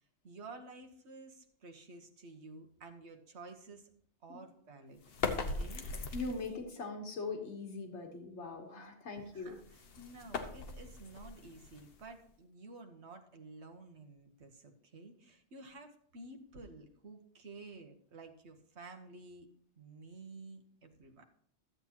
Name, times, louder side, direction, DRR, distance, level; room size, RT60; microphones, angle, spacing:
voice 1, 0.0-3.9 4.2-5.0 5.5-6.1 8.7-8.9 9.2-19.5 19.7-21.2, right 3 dB, 75° right, 5 dB, 1.4 m, -52 dB
sound 1, 5.0-6.6 9.3-12.3, left 4 dB, 60° left, 1.1 m, -40 dB
voice 2, 5.8-9.6, left 3 dB, 80° left, 4 dB, 1.5 m, -41 dB
13.5 x 7.9 x 2.9 m, 0.65 s
omnidirectional pair, 1.2 m